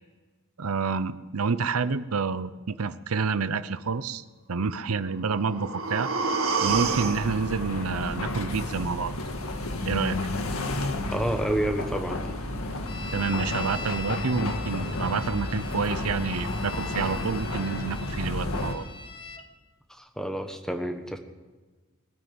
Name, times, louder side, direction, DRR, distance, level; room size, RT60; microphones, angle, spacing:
voice 1, 0.6-6.1 6.6-9.1 9.9-10.2 13.1-18.8, right 5 dB, 90° right, 14 dB, 0.7 m, -28 dB
sound 1, 5.1-9.1 9.4-9.5, right 5 dB, 70° right, 2.1 m, -30 dB
sound 2, 6.7-18.7, left 1 dB, 90° left, 1.8 m, -32 dB
voice 2, 11.1-12.2 19.9-21.2, right 1 dB, 5° left, 6 dB, 1.3 m, -29 dB
sound 3, 12.9-19.5, left 4 dB, 25° left, 1.3 m, -41 dB
20.5 x 9.5 x 7.5 m, 1.3 s
head